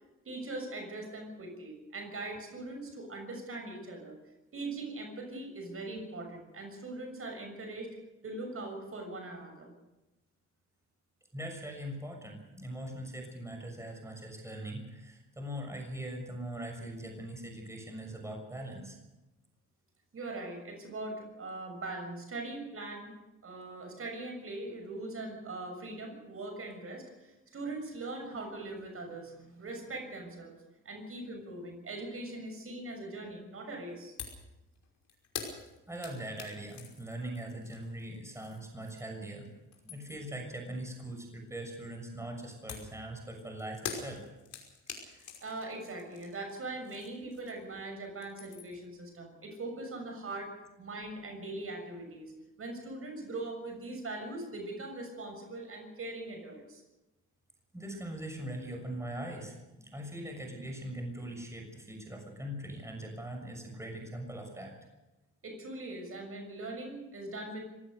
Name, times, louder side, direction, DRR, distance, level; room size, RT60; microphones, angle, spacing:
voice 1, 0.2-4.2 4.5-7.9 8.2-9.7 20.1-23.1 23.4-30.6 30.8-34.1 44.9-50.5 50.8-52.3 52.6-56.8 65.4-67.7, right 2 dB, 45° right, 4 dB, 6.6 m, -41 dB
voice 2, 11.3-19.0 35.9-39.5 39.8-44.2 57.7-64.7, right 1 dB, 10° right, 3 dB, 6.5 m, -41 dB
sound 1, 34.2-34.5 34.7-39.2 39.6-40.3 42.7-47.8 48.1-48.8, left 7 dB, 70° left, 5.4 m, -45 dB
26.0 x 16.5 x 6.7 m, 1.0 s
cardioid pair, 90°, 30 cm